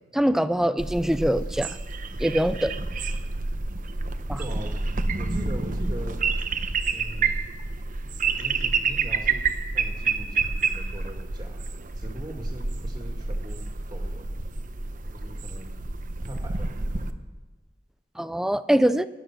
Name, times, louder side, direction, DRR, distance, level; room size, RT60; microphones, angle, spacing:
voice 1, 0.1-1.8 2.2-2.7 4.3-4.4 18.2-19.1, equal, 5° right, 14 dB, 0.4 m, -23 dB
sound 1, 0.8-17.1, right 4 dB, 45° right, 0.9 m, -29 dB
voice 2, 4.4-4.7 5.1-6.2 6.5-6.6 6.9-7.4 8.3-11.6 11.9-14.3 15.1-15.8 16.2-17.2, right 1 dB, 25° right, 2 dB, 2.3 m, -41 dB
20.0 x 11.5 x 6.2 m, 1.2 s
head